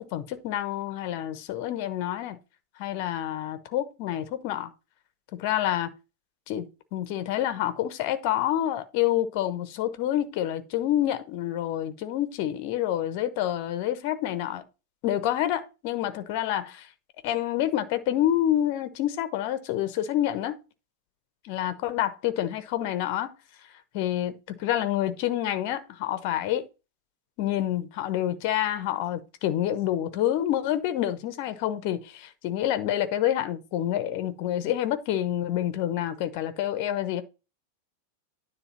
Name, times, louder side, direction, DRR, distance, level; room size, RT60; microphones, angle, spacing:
voice 1, 0.0-2.4 2.8-4.7 5.3-5.9 6.5-14.6 15.0-16.9 17.2-20.6 21.4-23.3 23.9-26.6 27.4-37.2, left 12 dB, 45° left, 1.0 m, -28 dB
9.9 x 3.4 x 5.7 m
figure-of-eight pair, 90°, 0 cm